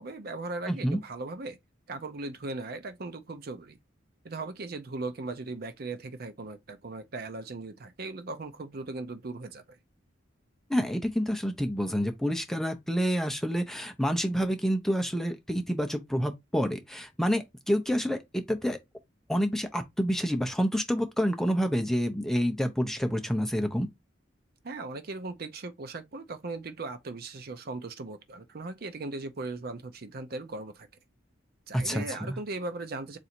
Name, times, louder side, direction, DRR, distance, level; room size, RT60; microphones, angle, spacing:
voice 1, 0.0-1.6 1.9-3.8 4.2-9.8 24.6-30.9 31.7-33.2, right 3 dB, 50° right, 0.6 m, -38 dB
voice 2, 0.7-1.0 10.7-18.8 19.3-23.9 31.7-32.4, equal, ahead, 0.6 m, -28 dB
4.0 x 2.5 x 4.3 m
head